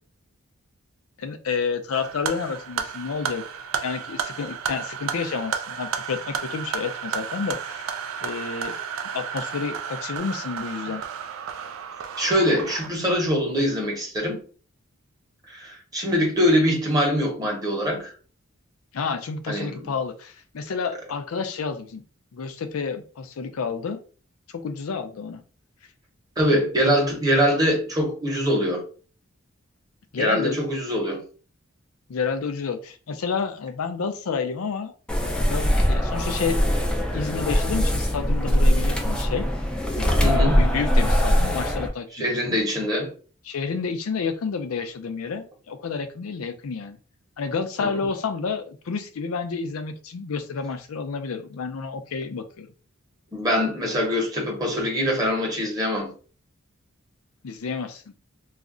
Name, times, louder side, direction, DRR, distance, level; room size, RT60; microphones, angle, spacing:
voice 1, 1.2-3.4 3.8-7.9 8.2-8.7 9.1-11.0 18.9-22.0 22.3-24.0 24.5-25.4 30.1-30.6 32.1-34.9 35.2-39.5 39.9-42.6 43.5-47.0 47.4-52.7 57.4-58.1, left 5 dB, 85° left, 0.4 m, -30 dB
sound 1, 1.9-12.9, right 7 dB, 70° right, 0.4 m, -32 dB
voice 2, 12.2-14.4 15.5-18.1 19.5-19.9 26.4-28.8 30.2-31.2 40.2-40.6 42.1-43.1 47.8-48.0 53.3-56.1, equal, 20° right, 0.9 m, -23 dB
sound 2, 35.1-41.9, equal, 5° left, 0.3 m, -21 dB
2.4 x 2.1 x 3.7 m
head